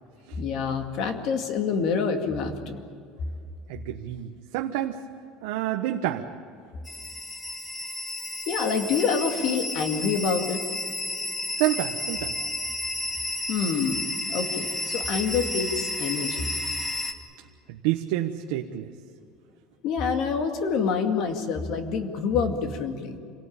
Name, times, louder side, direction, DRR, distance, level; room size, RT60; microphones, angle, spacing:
voice 1, 0.4-2.8 8.5-10.6 13.5-16.5 19.8-23.2, left 5 dB, 50° left, 5 dB, 2.2 m, -27 dB
voice 2, 3.7-5.0 5.4-6.3 11.6-12.4 17.7-18.9, right 13 dB, 85° right, 3 dB, 1.1 m, -28 dB
sound 1, 6.9-17.1, left 2 dB, 5° left, 1.3 m, -32 dB
27.0 x 18.0 x 8.8 m, 2.4 s
cardioid pair, 180°, 0 cm